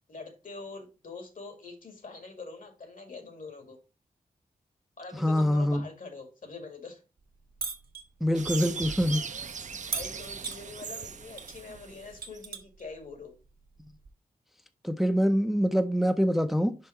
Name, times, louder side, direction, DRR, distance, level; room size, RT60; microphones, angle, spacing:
voice 1, 0.1-3.8 5.0-7.0 9.9-13.4, left 3 dB, 65° left, 2.2 m, -44 dB
voice 2, 5.2-5.9 8.2-9.2 14.8-16.8, equal, ahead, 0.5 m, -25 dB
sound 1, 7.6-8.1 9.9-10.6 11.4-11.6 11.9-12.8 14.1-14.2, right 5 dB, 90° right, 1.3 m, -36 dB
sound 2, 8.3-12.4, right 5 dB, 55° right, 0.6 m, -39 dB
5.6 x 5.4 x 4.3 m
wide cardioid pair, 135°, 15 cm